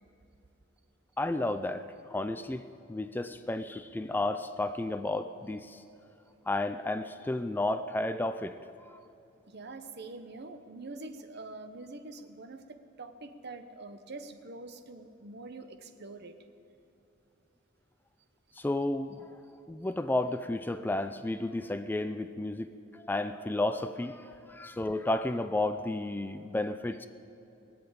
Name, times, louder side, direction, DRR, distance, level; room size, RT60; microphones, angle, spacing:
voice 1, 1.2-5.8 6.5-8.6 8.9-9.0 18.6-19.4 19.7-27.1, left 2 dB, 10° left, 10 dB, 0.3 m, -32 dB
voice 2, 9.5-16.4 26.4-26.5, right 3 dB, 55° right, 9 dB, 0.9 m, -45 dB
20.0 x 7.8 x 8.7 m, 2.9 s
head